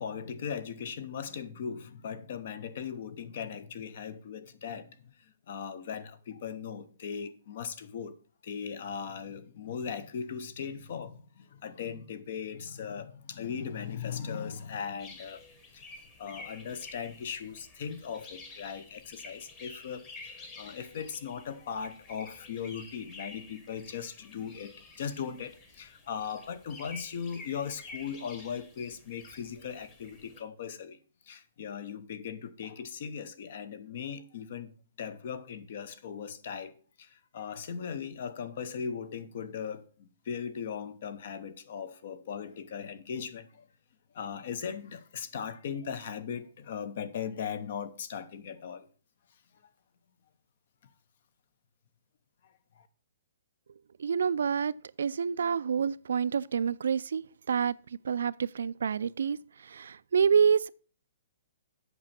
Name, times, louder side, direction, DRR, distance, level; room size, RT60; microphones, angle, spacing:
voice 1, 0.0-8.1 8.4-15.4 15.7-15.8 16.2-31.0 31.3-43.7 44.1-48.9 52.8-52.9, left 7 dB, 45° left, 0.9 m, -38 dB
sound 1, 15.0-30.4, left 3 dB, 15° left, 1.3 m, -50 dB
voice 2, 54.0-54.7 55.0-57.7 58.0-59.4 59.6-60.7, right 7 dB, 80° right, 0.4 m, -27 dB
8.2 x 6.2 x 5.9 m
hypercardioid pair, 175°, 0 cm